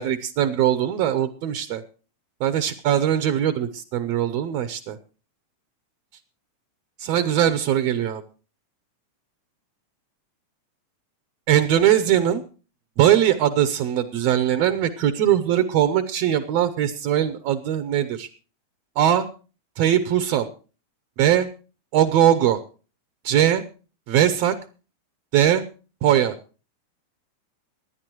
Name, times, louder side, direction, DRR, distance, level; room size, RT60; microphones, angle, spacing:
voice 1, 0.0-1.8 2.4-5.0 7.0-8.2 11.5-12.4 13.0-18.3 19.0-19.3 19.8-20.5 21.2-21.5 21.9-22.6 23.2-23.6 24.1-24.6 25.3-25.6 26.0-26.4, right 11 dB, 70° right, 10 dB, 2.0 m, -20 dB
25.5 x 10.5 x 3.1 m, 0.36 s
omnidirectional pair, 3.3 m